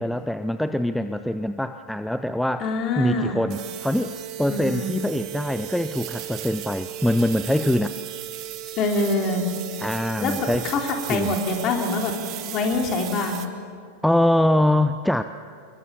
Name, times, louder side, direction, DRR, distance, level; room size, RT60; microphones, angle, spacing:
voice 1, 0.0-2.7 3.0-7.9 9.8-10.7 11.1-11.3 14.0-15.2, left 1 dB, ahead, 11 dB, 0.6 m, -23 dB
voice 2, 2.6-3.4 4.5-4.9 8.8-9.5 10.2-10.3 10.6-13.4, left 3 dB, 35° left, 2 dB, 3.6 m, -25 dB
sound 1, 3.5-13.5, right 12 dB, 40° right, 1.6 m, -35 dB
26.5 x 22.0 x 6.9 m, 2.2 s
figure-of-eight pair, 90°, 0 cm